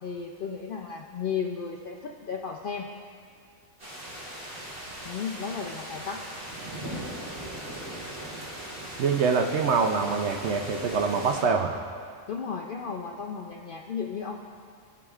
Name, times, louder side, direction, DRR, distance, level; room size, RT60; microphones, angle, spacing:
voice 1, 0.0-2.9 5.0-6.2 12.3-14.4, left 6 dB, 65° left, 1 dB, 0.5 m, -34 dB
sound 1, 3.8-11.4, right 1 dB, 30° right, 2.0 m, -39 dB
voice 2, 9.0-11.8, right 5 dB, 65° right, 4 dB, 0.8 m, -25 dB
17.5 x 6.0 x 2.4 m, 2.2 s
omnidirectional pair, 1.4 m